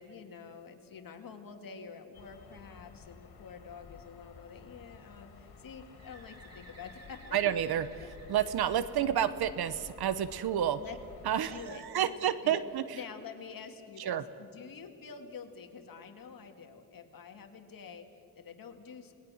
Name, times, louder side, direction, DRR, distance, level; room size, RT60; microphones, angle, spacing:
voice 1, 0.0-7.4 8.0-8.1 10.8-11.0 11.4-12.1 12.4-12.6 12.9-19.1, left 6 dB, 65° left, 5 dB, 2.2 m, -48 dB
sound 1, 2.1-11.7, left 5 dB, 80° left, 2.8 m, -53 dB
Bird, 6.0-9.7 11.5-13.3, right 2 dB, 40° right, 3.9 m, -57 dB
voice 2, 7.3-7.9 8.3-10.8 11.2-12.8 14.0-14.2, right 10 dB, 85° right, 14 dB, 0.9 m, -30 dB
28.5 x 20.0 x 6.4 m, 2.4 s
cardioid pair, 95°, 37 cm